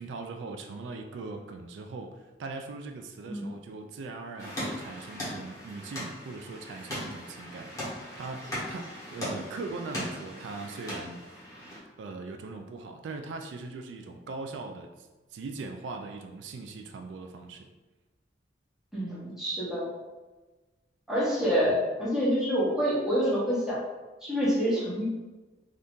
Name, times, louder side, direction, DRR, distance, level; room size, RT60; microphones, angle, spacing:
voice 1, 0.0-11.2 12.0-17.7, right 3 dB, 80° right, 5 dB, 0.3 m, -40 dB
sound 1, 4.4-11.8, equal, 20° left, 1.1 m, -38 dB
voice 2, 18.9-19.9 21.1-23.8 24.2-25.0, equal, 5° right, -8 dB, 0.9 m, -27 dB
2.7 x 2.5 x 3.5 m, 1.2 s
head